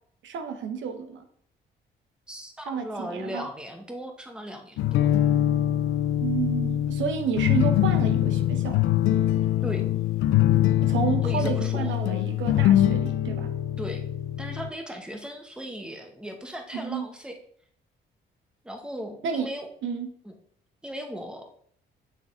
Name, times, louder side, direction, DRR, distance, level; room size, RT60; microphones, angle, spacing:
voice 1, 0.2-1.2 2.7-3.5 6.2-8.8 10.8-13.5 16.7-17.0 19.2-19.5 19.8-20.1, right 6 dB, 70° right, 7 dB, 0.9 m, -31 dB
voice 2, 2.3-5.1 9.6-9.8 11.2-11.9 13.8-14.0 14.4-17.4 18.6-19.7 20.2-20.3 20.8-21.5, equal, 5° right, 4 dB, 1.0 m, -37 dB
sound 1, 4.8-14.7, left 12 dB, 85° left, 0.4 m, -23 dB
8.1 x 3.6 x 3.7 m, 0.62 s
cardioid pair, 90°, 20 cm